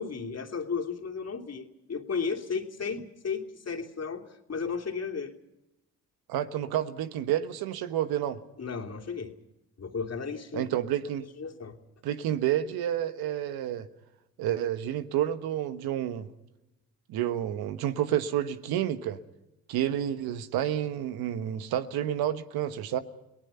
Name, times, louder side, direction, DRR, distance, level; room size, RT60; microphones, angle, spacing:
voice 1, 0.0-5.4 8.6-9.3 9.8-10.7 11.4-11.8, left 5 dB, 45° left, 3.1 m, -34 dB
voice 2, 6.3-8.4 10.5-11.2 12.0-13.9 14.4-16.3 17.1-19.2 19.7-23.0, right 11 dB, 80° right, 1.4 m, -29 dB
30.0 x 19.0 x 5.7 m
supercardioid pair, 55°, 36 cm